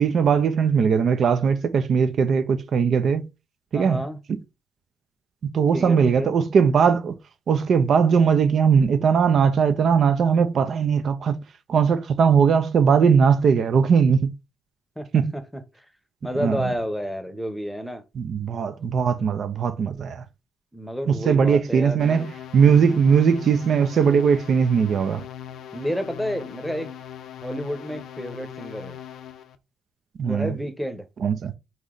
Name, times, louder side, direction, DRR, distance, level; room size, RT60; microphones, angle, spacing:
voice 1, 0.0-3.3 3.7-4.0 5.4-7.2 7.5-11.4 11.7-14.3 15.1-15.3 16.4-16.7 18.2-20.2 21.1-22.3 22.5-25.2 30.2-30.5 31.2-31.5, right 6 dB, 60° right, 0.5 m, -19 dB
voice 2, 3.7-4.2 5.7-6.3 15.0-15.8 16.2-18.0 20.7-22.3 22.6-23.0 25.7-26.9 27.4-29.0 30.2-31.0, equal, ahead, 0.8 m, -30 dB
sound 1, 22.0-29.6, left 9 dB, 75° left, 0.6 m, -40 dB
4.0 x 3.1 x 3.8 m
cardioid pair, 90°, 0 cm